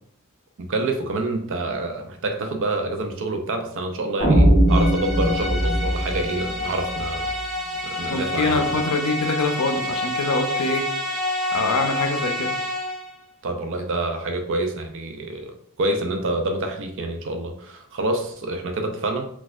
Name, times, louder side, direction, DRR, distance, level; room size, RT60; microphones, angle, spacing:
voice 1, 0.6-7.3 7.8-8.8 13.4-19.3, right 2 dB, 60° right, 5 dB, 0.4 m, -27 dB
sound 1, 4.2-7.3, right 1 dB, 15° left, 1.3 m, -19 dB
sound 2, 4.7-13.1, left 1 dB, ahead, 0.7 m, -28 dB
voice 2, 8.1-10.9 11.5-12.6, left 3 dB, 90° left, 5 dB, 0.6 m, -24 dB
4.2 x 2.3 x 2.4 m, 0.66 s
head